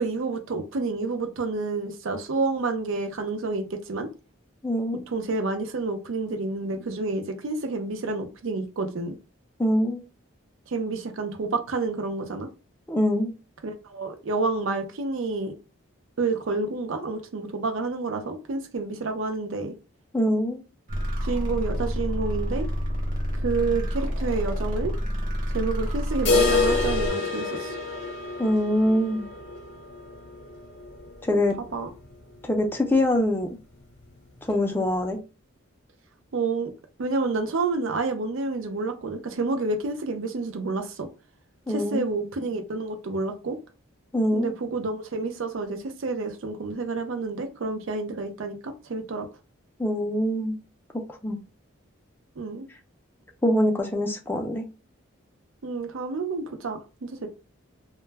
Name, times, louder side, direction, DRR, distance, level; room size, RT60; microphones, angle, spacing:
voice 1, 0.0-4.1 5.1-9.2 10.7-12.5 13.6-15.5 16.2-19.7 21.2-22.7 23.4-24.9 25.5-27.7 31.7-31.9 36.3-36.7 37.0-41.1 41.7-43.6 44.3-49.3 52.4-52.7 55.6-57.3, right 3 dB, 70° right, 0.5 m, -29 dB
voice 2, 4.6-5.1 9.6-10.0 12.9-13.3 20.1-20.6 28.4-29.3 31.2-31.5 32.4-33.5 34.4-35.2 41.7-42.0 44.1-44.5 49.8-50.6 51.2-51.4 53.4-54.6, left 1 dB, 10° left, 0.4 m, -24 dB
sound 1, 20.9-27.1, equal, 40° right, 0.9 m, -28 dB
sound 2, 26.3-32.1 32.4-32.5 32.8-32.9 33.4-33.5 34.4-34.5, left 4 dB, 55° left, 0.8 m, -27 dB
2.2 x 2.1 x 3.2 m
head